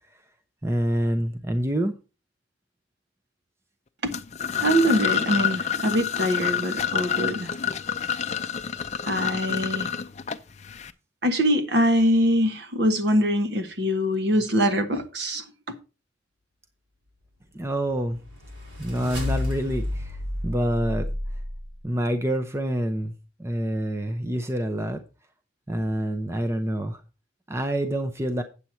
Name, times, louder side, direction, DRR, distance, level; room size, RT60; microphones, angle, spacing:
voice 1, 0.6-2.0 17.5-18.2 18.8-20.2 20.4-21.1 21.8-23.1 23.4-25.0 25.7-27.0 27.5-28.4, right 1 dB, 15° right, 0.6 m, -26 dB
sound 1, 4.1-10.9, left 8 dB, 35° left, 0.5 m, -28 dB
voice 2, 4.6-7.5 9.1-9.9 11.2-15.4, equal, 55° right, 1.2 m, -23 dB
sound 2, 17.8-21.9, left 1 dB, 70° right, 5.0 m, -31 dB
8.3 x 7.8 x 4.3 m
head